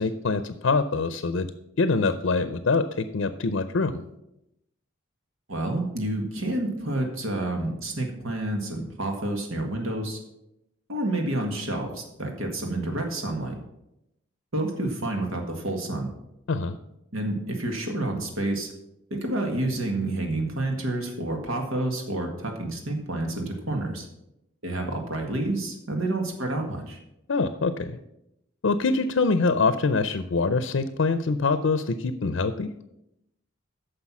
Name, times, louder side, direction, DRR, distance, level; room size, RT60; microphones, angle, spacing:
voice 1, 0.0-1.5 1.8-4.0 16.5-16.8 27.3-28.0 28.6-32.7, left 4 dB, 75° left, 11 dB, 0.5 m, -24 dB
voice 2, 5.5-10.2 10.9-13.6 14.5-16.1 17.1-18.7 19.1-24.1 24.6-27.0, right 1 dB, 90° right, 2 dB, 1.7 m, -29 dB
9.8 x 6.6 x 6.0 m, 0.86 s
head